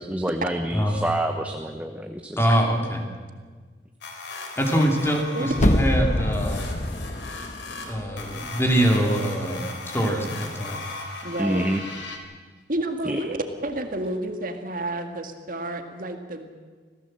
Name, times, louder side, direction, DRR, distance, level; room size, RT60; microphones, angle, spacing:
voice 1, 0.0-2.4 11.4-11.8 13.0-13.3, right 1 dB, 10° right, 5 dB, 1.0 m, -27 dB
voice 2, 2.4-3.0 4.6-6.7 7.9-9.7 9.9-10.8, equal, 15° left, 2 dB, 3.1 m, -23 dB
sound 1, 4.0-12.2, left 3 dB, 85° left, 3.5 m, -37 dB
sound 2, 5.5-8.4 8.8-8.9, left 1 dB, 40° left, 1.1 m, -25 dB
voice 3, 11.2-11.7 12.7-13.4 13.6-16.5, right 1 dB, 50° right, 6 dB, 1.9 m, -30 dB
26.0 x 16.5 x 7.7 m, 1.5 s
head